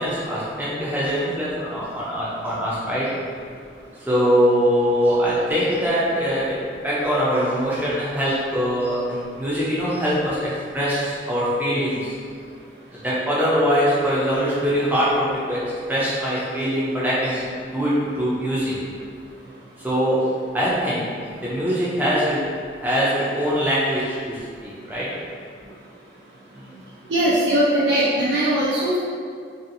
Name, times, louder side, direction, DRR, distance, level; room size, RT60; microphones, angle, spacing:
voice 1, 0.0-3.1 4.0-12.1 12.9-18.8 19.8-22.5 22.8-25.2 26.5-26.8, equal, 10° right, -8 dB, 0.5 m, -23 dB
voice 2, 27.1-29.0, right 1 dB, 80° right, -9 dB, 0.4 m, -20 dB
2.6 x 2.4 x 2.6 m, 2.2 s
head